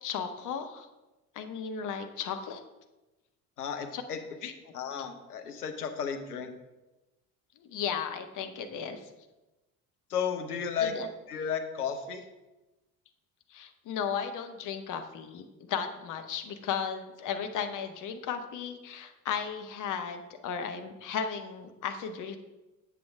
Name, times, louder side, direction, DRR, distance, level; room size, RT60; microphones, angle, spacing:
voice 1, 0.0-0.9 1.3-2.6 3.9-4.0 4.4-4.5 7.6-9.1 10.8-11.1 13.5-22.4, left 7 dB, 45° left, 7 dB, 0.9 m, -35 dB
voice 2, 3.6-4.2 4.7-6.5 10.1-10.9 11.3-12.2, left 7 dB, 80° left, 6 dB, 0.8 m, -33 dB
7.7 x 7.1 x 3.4 m, 1.1 s
figure-of-eight pair, 60°, 45 cm